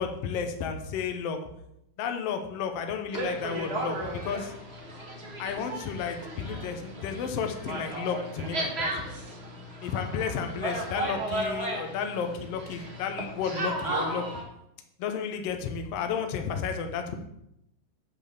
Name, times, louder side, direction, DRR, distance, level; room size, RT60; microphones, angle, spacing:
voice 1, 0.0-1.4 2.0-4.5 5.4-8.9 9.8-14.2 15.0-17.1, left 6 dB, 90° left, 5 dB, 1.3 m, -32 dB
sound 1, 3.1-14.4, right 1 dB, 40° right, 0.9 m, -35 dB
10.5 x 4.0 x 6.9 m, 0.80 s
omnidirectional pair, 3.9 m